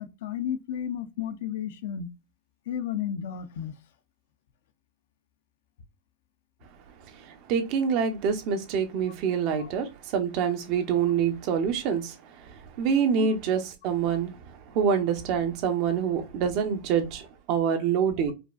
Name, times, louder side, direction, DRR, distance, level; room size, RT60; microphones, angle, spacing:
voice 1, 0.0-2.1 2.7-3.8 9.6-9.7 13.2-13.3, left 9 dB, 75° left, 0.6 m, -33 dB
voice 2, 7.2-18.3, right 7 dB, 50° right, 0.9 m, -26 dB
5.0 x 2.4 x 2.4 m
supercardioid pair, 150°, 0 cm